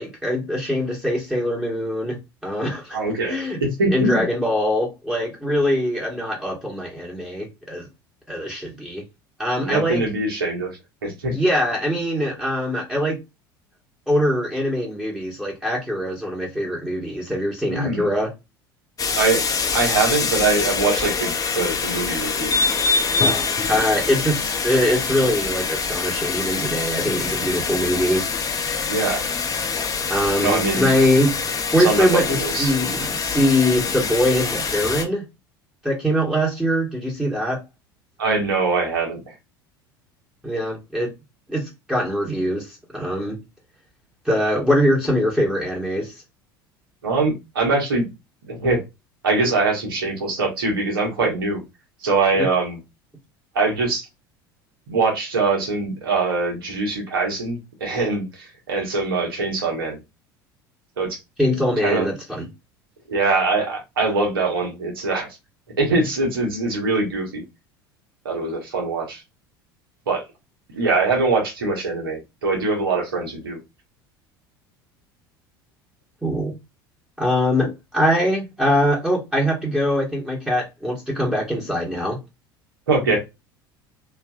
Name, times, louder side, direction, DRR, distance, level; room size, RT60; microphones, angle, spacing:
voice 1, 0.0-2.2 2.4-3.0 3.3-3.6 3.9-7.9 8.3-9.0 9.4-10.0 11.3-13.2 14.1-18.3 23.7-28.2 30.1-31.3 31.7-35.2 35.8-37.6 40.4-41.1 41.5-43.4 44.2-46.1 52.4-52.5 61.4-62.5 76.2-76.6 77.2-82.2, equal, 5° right, 1.1 m, -22 dB
voice 2, 2.9-4.3 9.6-11.4 17.7-18.1 19.1-19.4 19.7-22.5 28.9-29.2 30.4-30.9 31.8-32.7 38.2-39.3 47.0-48.0 48.5-48.8 49.2-51.6 52.0-52.8 53.5-54.1 54.9-60.0 61.0-61.2 61.8-62.1 63.1-65.3 65.8-67.4 68.2-69.2 70.1-70.2 70.7-73.6 77.6-77.7 82.9-83.2, right 3 dB, 80° right, 1.2 m, -23 dB
sound 1, 19.0-35.0, left 5 dB, 30° left, 0.7 m, -25 dB
3.3 x 2.5 x 2.3 m
hypercardioid pair, 70°, 12 cm